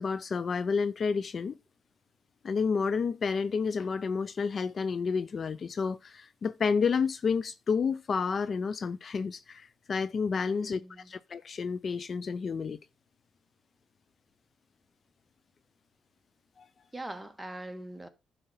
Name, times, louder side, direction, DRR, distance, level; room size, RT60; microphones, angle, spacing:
voice 1, 0.0-1.6 2.4-10.8 11.1-12.8 16.6-16.7, left 5 dB, 45° left, 0.4 m, -30 dB
voice 2, 10.5-11.1 16.9-18.1, right 1 dB, 5° right, 1.5 m, -42 dB
11.0 x 4.1 x 5.4 m
cardioid pair, 90°, 0 cm